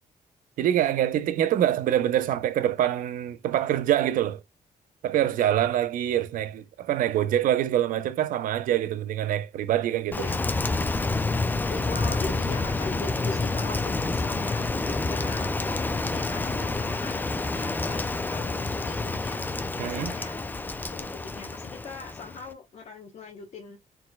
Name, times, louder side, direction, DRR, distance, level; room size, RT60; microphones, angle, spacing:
voice 1, 0.6-4.4 5.0-10.3 19.8-20.1, right 11 dB, 80° right, 0.6 m, -25 dB
voice 2, 10.0-10.4 11.7-15.5 16.1-19.4 19.8-20.5 20.9-23.8, left 4 dB, 55° left, 1.0 m, -41 dB
Rain, 10.1-22.5, left 3 dB, 15° left, 0.4 m, -28 dB
4.3 x 4.0 x 2.3 m
cardioid pair, 125°, 14 cm